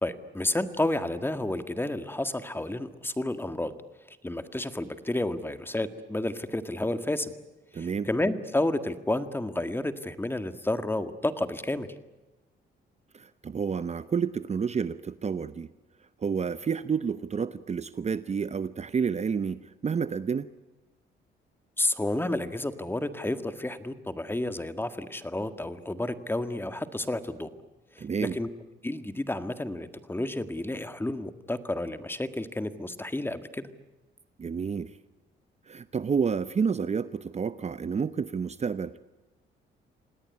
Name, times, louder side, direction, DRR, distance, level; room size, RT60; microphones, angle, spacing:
voice 1, 0.0-3.7 4.1-7.3 7.7-11.9 21.8-27.5 28.0-28.5 28.8-33.7, left 1 dB, 10° left, 10 dB, 1.8 m, -31 dB
voice 2, 7.7-8.1 13.1-15.7 16.2-20.5 28.0-28.4 34.4-34.9 35.7-39.0, right 6 dB, 35° right, 13 dB, 0.8 m, -30 dB
27.0 x 18.5 x 9.7 m, 1.1 s
cardioid pair, 90°, 20 cm